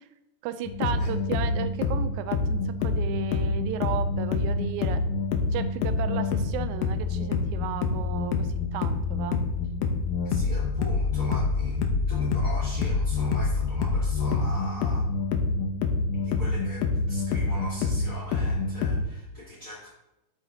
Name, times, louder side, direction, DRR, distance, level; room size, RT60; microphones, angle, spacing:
voice 1, 0.4-5.0 5.5-9.4, right 10 dB, 80° right, 9 dB, 1.8 m, -34 dB
sound 1, 0.7-19.0, left 4 dB, 85° left, 2.6 m, -27 dB
voice 2, 10.2-15.1 16.2-19.9, left 1 dB, 25° left, -9 dB, 3.2 m, -41 dB
10.5 x 8.7 x 2.9 m, 0.90 s
omnidirectional pair, 4.0 m